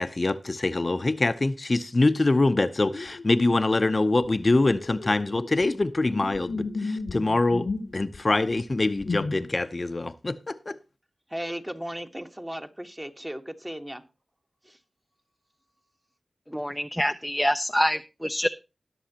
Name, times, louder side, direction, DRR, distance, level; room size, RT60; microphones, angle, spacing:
voice 1, 0.0-10.8, left 2 dB, 40° left, 0.7 m, -24 dB
sound 1, 2.5-3.9 4.2-4.3 4.8-8.2 8.7-9.5, left 3 dB, 70° left, 1.0 m, -34 dB
voice 2, 11.3-14.0 14.6-14.8, equal, 15° right, 1.4 m, -36 dB
voice 3, 16.5-18.5, equal, ahead, 0.6 m, -26 dB
20.0 x 7.0 x 2.8 m
cardioid pair, 55°, 0 cm